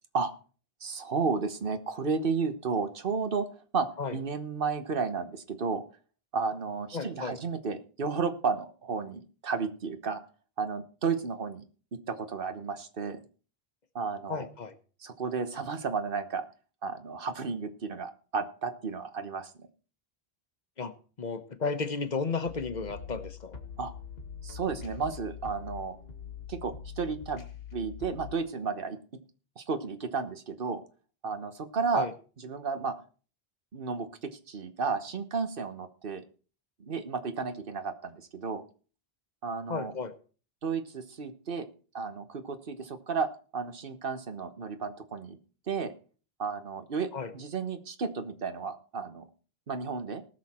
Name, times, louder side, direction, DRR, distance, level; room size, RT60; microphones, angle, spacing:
voice 1, 0.8-3.5 3.7-5.8 6.3-10.2 10.6-11.6 11.9-13.2 13.9-14.5 15.0-16.4 16.8-19.7 23.8-23.9 24.4-26.0 26.5-29.0 29.6-30.8 31.2-32.1 32.4-32.9 33.7-36.2 36.8-38.7 39.4-39.9 40.6-41.7 41.9-45.4 45.7-45.9 46.4-49.3 49.7-50.2, right 5 dB, 60° right, 1.3 m, -33 dB
voice 2, 6.9-7.3 14.3-14.7 20.8-20.9 21.2-23.6 31.9-32.1 39.7-40.1 47.1-47.3, left 4 dB, 45° left, 1.1 m, -33 dB
sound 1, 22.5-28.3, left 7 dB, 75° left, 1.8 m, -43 dB
19.0 x 6.6 x 4.3 m
omnidirectional pair, 1.0 m